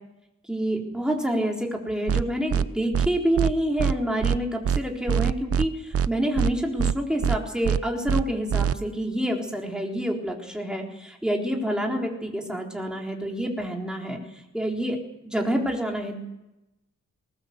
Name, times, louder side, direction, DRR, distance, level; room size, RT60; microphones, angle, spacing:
voice 1, 0.5-14.2 14.5-15.0 15.2-16.2, equal, 5° right, 0 dB, 4.0 m, -27 dB
sound 1, 2.1-2.2 2.5-2.6 2.9-3.1 3.4-3.5 3.8-3.9 4.2-4.4 4.6-4.8 5.1-5.6 5.9-6.1 6.4-6.5 6.8-6.9 7.2-7.4 7.6-7.8 8.1-8.2 8.5-8.7, right 7 dB, 50° right, 0.7 m, -23 dB
20.0 x 19.5 x 8.1 m, 0.92 s
wide cardioid pair, 140°, 30 cm